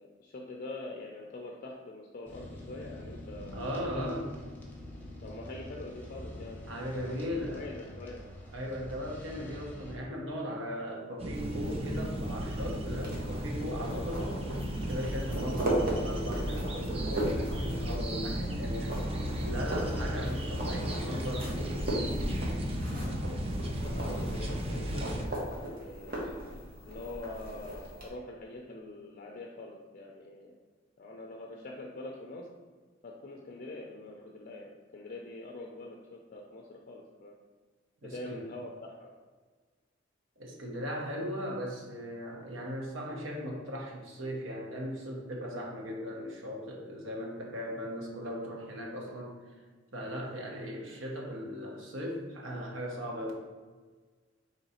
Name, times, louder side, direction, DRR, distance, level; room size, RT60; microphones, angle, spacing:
voice 1, 0.0-3.6 3.9-4.3 5.2-6.6 6.9-7.2 7.4-8.3 23.8-26.3 26.8-30.6 31.0-32.5 33.0-37.3 38.0-39.1, left 2 dB, 45° left, 0 dB, 0.4 m, -44 dB
sound 1, 2.2-10.0, left 1 dB, 10° left, 0.8 m, -46 dB
voice 2, 3.4-4.3 6.7-7.6 8.5-14.4 14.9-18.9 19.4-21.5 38.0-38.5 40.4-49.4 49.9-53.3, equal, 75° right, -1 dB, 1.0 m, -38 dB
sound 2, 11.2-25.3, equal, 30° right, 0.5 m, -34 dB
sound 3, 11.3-28.1, right 1 dB, 50° right, 1.1 m, -38 dB
3.9 x 3.0 x 4.2 m, 1.4 s
head